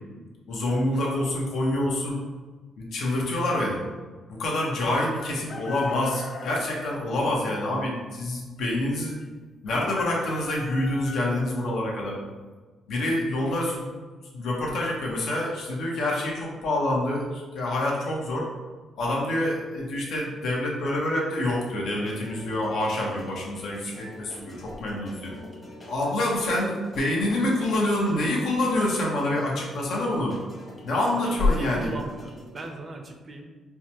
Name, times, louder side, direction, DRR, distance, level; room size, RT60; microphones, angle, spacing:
voice 1, 0.5-2.2 2.8-3.8 4.3-9.2 9.6-12.2 12.9-13.9 14.3-18.5 19.0-25.3 25.9-30.3 30.8-31.9, left 1 dB, 75° left, -2 dB, 0.9 m, -26 dB
Chicken rooster, 5.2-7.0 9.7-11.5, left 4 dB, 45° left, 0.4 m, -40 dB
sound 1, 21.5-32.8, equal, 30° left, 1.1 m, -45 dB
voice 2, 31.2-33.5, right 2 dB, 40° right, 4 dB, 0.5 m, -39 dB
4.5 x 2.3 x 2.9 m, 1.4 s
cardioid pair, 90°, 0 cm